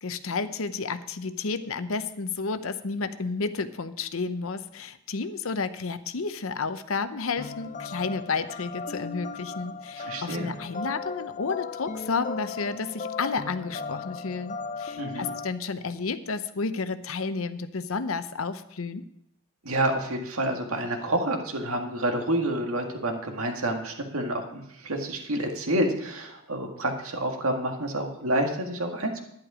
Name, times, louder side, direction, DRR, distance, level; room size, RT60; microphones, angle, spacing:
voice 1, 0.0-19.0, left 4 dB, 70° left, 12 dB, 0.7 m, -31 dB
sound 1, 7.4-15.5, left 4 dB, 35° left, 0.6 m, -37 dB
voice 2, 10.0-10.5 15.0-15.3 19.6-29.2, right 1 dB, 90° right, 3 dB, 1.9 m, -28 dB
11.0 x 10.5 x 4.9 m, 0.75 s
head